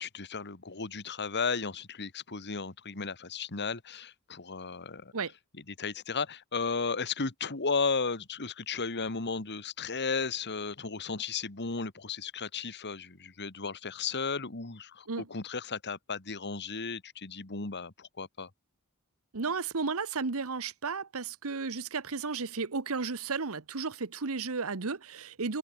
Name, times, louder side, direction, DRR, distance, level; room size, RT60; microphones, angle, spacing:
voice 1, 0.0-5.1 5.8-18.5, left 4 dB, 50° left, 2.1 m, -34 dB
voice 2, 19.3-25.6, right 4 dB, 70° right, 1.1 m, -33 dB
head